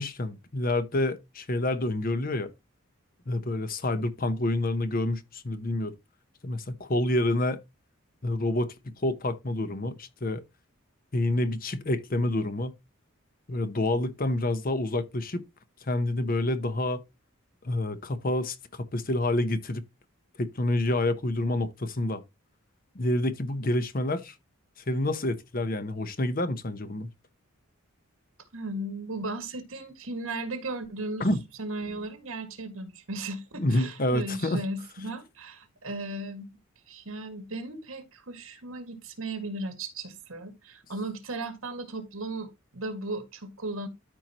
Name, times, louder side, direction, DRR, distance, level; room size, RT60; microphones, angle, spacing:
voice 1, 0.0-2.5 3.3-6.0 6.4-7.6 8.2-8.7 9.0-10.4 11.1-12.7 13.5-15.4 15.8-17.0 17.6-19.8 20.4-22.2 22.9-24.3 24.8-27.1 31.2-31.4 33.6-34.6, left 1 dB, 40° left, 0.9 m, -28 dB
voice 2, 28.5-31.3 31.6-36.5 36.9-43.9, right 2 dB, 80° right, 1.9 m, -36 dB
13.5 x 4.6 x 2.9 m
head